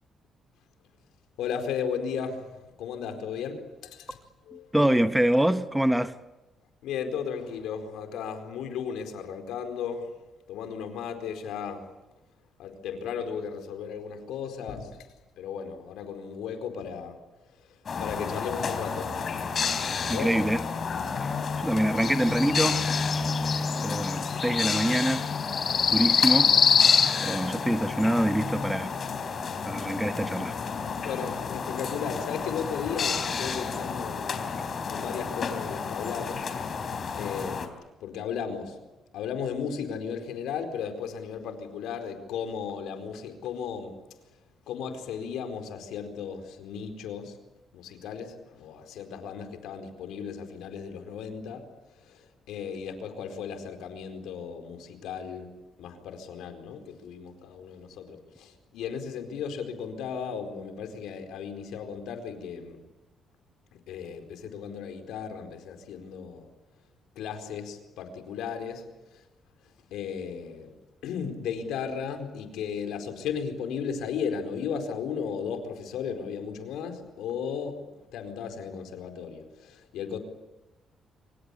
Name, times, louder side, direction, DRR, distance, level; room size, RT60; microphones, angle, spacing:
voice 1, 1.4-4.2 4.5-4.7 6.8-10.1 10.5-11.9 12.6-14.9 15.4-17.2 17.6-19.4 20.1-20.4 31.0-34.5 34.9-36.5 36.8-37.7 38.0-38.8 39.1-44.0 44.7-47.4 47.7-51.6 52.0-55.5 55.8-62.8 63.7-66.5 67.1-68.8 69.1-69.2 69.9-70.7 71.0-77.8 78.1-80.2, left 7 dB, 90° left, 4.5 m, -35 dB
voice 2, 4.7-6.2 20.1-20.6 21.2-21.3 21.6-22.8 23.4-25.3 25.9-26.5 27.2-28.9 29.7-30.5, right 1 dB, 5° right, 1.2 m, -25 dB
sound 1, 17.9-37.7, left 5 dB, 45° left, 4.0 m, -28 dB
26.5 x 25.0 x 8.5 m
cardioid pair, 90°, 0 cm